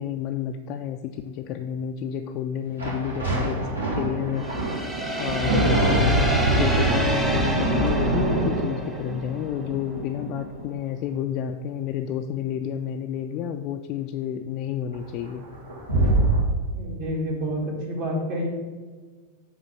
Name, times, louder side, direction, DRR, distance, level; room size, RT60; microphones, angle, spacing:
voice 1, 0.0-4.7 5.2-6.1 6.6-15.4, left 9 dB, 40° left, 4 dB, 0.3 m, -30 dB
sound 1, 2.8-10.7 14.9-15.0 15.2-16.4, right 2 dB, 80° right, 1.9 m, -24 dB
sound 2, 4.4-9.1, right 1 dB, 10° right, 0.9 m, -29 dB
voice 2, 16.7-18.5, equal, 45° right, 0 dB, 1.7 m, -28 dB
7.9 x 3.1 x 5.6 m, 1.4 s
figure-of-eight pair, 90°, 0 cm